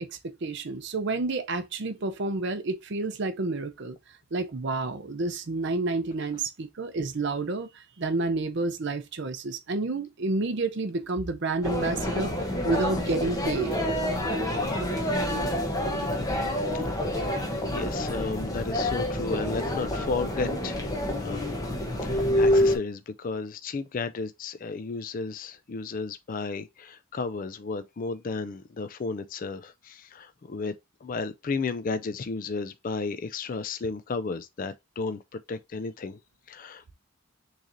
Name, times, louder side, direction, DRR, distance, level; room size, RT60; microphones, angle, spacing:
voice 1, 0.0-4.0 4.3-13.7, right 3 dB, 50° right, 0.6 m, -30 dB
sound 1, 11.6-22.8, left 1 dB, 15° left, 0.9 m, -27 dB
voice 2, 17.7-21.5 22.0-30.7 31.0-36.2 36.5-36.9, left 4 dB, 40° left, 0.3 m, -33 dB
6.3 x 3.2 x 2.6 m
head